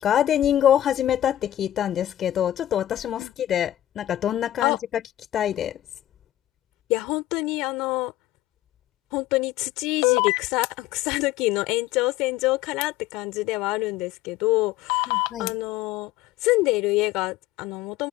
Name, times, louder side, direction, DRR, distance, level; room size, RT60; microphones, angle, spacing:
voice 1, 0.0-5.0 5.3-5.8 15.1-15.5, left 10 dB, 35° left, 5.2 m, -24 dB
voice 2, 6.9-8.1 9.1-16.1 16.4-18.1, left 21 dB, 60° left, 5.7 m, -26 dB
sound 1, 10.0-10.7 12.8-12.9 14.9-15.5, left 28 dB, 80° left, 1.8 m, -22 dB
supercardioid pair, 135°, 0 cm